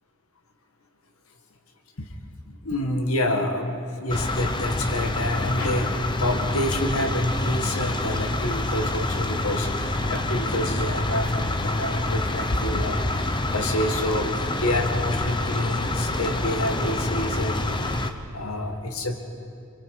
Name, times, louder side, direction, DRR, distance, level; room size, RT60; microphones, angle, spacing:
voice 1, 2.5-19.2, left 1 dB, 80° left, 5 dB, 1.8 m, -28 dB
sound 1, 4.1-18.1, left 2 dB, 20° left, 0.9 m, -27 dB
29.5 x 23.0 x 4.9 m, 2.7 s
head